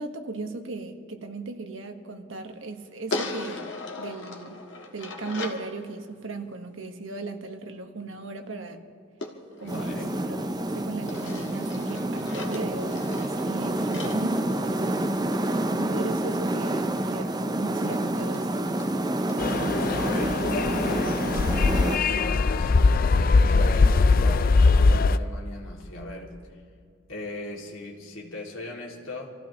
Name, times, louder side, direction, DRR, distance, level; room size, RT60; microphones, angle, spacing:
voice 1, 0.0-3.7 4.0-4.6 4.9-8.8 9.6-10.4 10.7-13.1 13.4-15.1 15.7-18.7, right 3 dB, 80° right, 5 dB, 1.4 m, -37 dB
sound 1, 3.1-5.7 9.2-10.6 11.1-15.2 17.1-17.2 17.5-17.6 17.9-18.0 18.3-18.4 18.8-18.9 19.3-19.4, left 2 dB, 65° left, 1.6 m, -38 dB
voice 2, 9.6-10.2 20.0-20.5 20.8-22.8 23.4-26.4 27.1-29.3, left 2 dB, 90° left, -1 dB, 2.5 m, -38 dB
sound 2, 9.7-22.0, right 1 dB, 20° right, 0.6 m, -28 dB
sound 3, 19.4-25.2, left 3 dB, 45° left, 0.4 m, -21 dB
27.5 x 15.5 x 3.0 m, 2.3 s
head